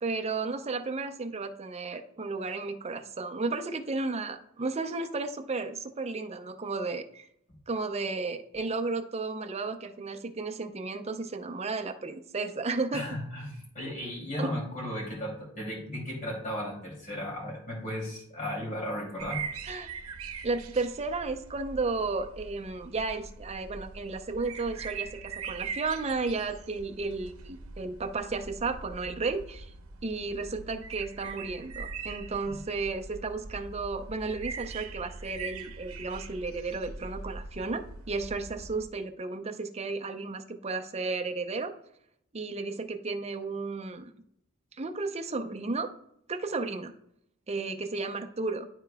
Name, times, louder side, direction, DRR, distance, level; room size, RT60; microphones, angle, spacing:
voice 1, 0.0-7.3 7.7-13.2 14.4-14.5 19.6-19.9 20.4-29.7 30.0-41.7 42.3-44.1 44.8-45.9 46.3-46.9 47.5-48.7, right 3 dB, 30° right, 6 dB, 0.6 m, -33 dB
voice 2, 12.9-19.4, equal, 40° left, -2 dB, 2.7 m, -35 dB
sound 1, 19.2-38.9, right 5 dB, 80° right, 0.8 m, -42 dB
12.0 x 4.5 x 2.3 m, 0.72 s
head